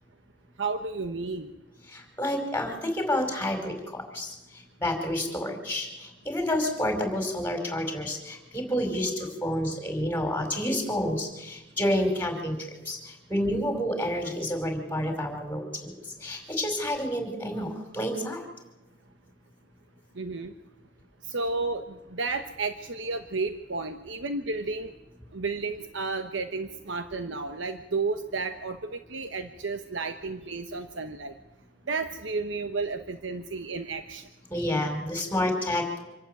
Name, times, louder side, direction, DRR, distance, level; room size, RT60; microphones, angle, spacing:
voice 1, 0.6-1.5 20.2-20.5 21.3-25.0 25.3-31.3 31.9-34.3, right 3 dB, 75° right, 7 dB, 1.1 m, -32 dB
voice 2, 1.9-4.3 4.8-5.9 6.2-12.6 12.8-13.0 13.3-15.9 16.2-18.4 34.5-36.0, left 1 dB, 10° left, 3 dB, 5.0 m, -29 dB
26.0 x 12.0 x 9.2 m, 1.1 s
head